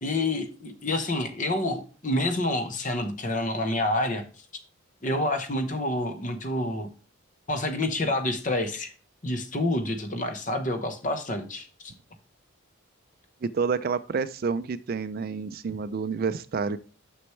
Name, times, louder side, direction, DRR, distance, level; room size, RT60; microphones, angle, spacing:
voice 1, 0.0-4.2 5.0-6.9 7.5-8.9 9.2-11.9, left 1 dB, 35° left, 8 dB, 1.0 m, -28 dB
voice 2, 13.4-16.8, right 5 dB, 45° right, 14 dB, 0.3 m, -29 dB
6.4 x 6.1 x 3.1 m, 0.37 s
head